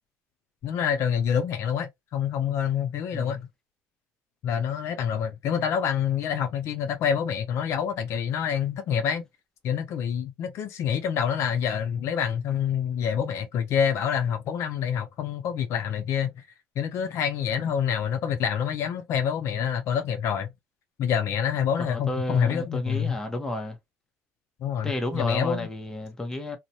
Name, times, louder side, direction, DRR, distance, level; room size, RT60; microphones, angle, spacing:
voice 1, 0.6-3.5 4.4-9.2 9.6-16.3 16.8-20.5 21.0-23.2 24.6-25.7, left 8 dB, 60° left, 0.5 m, -27 dB
voice 2, 21.8-23.8 24.8-26.6, left 1 dB, 10° left, 0.8 m, -31 dB
2.5 x 2.1 x 2.8 m
cardioid pair, 110°, 5 cm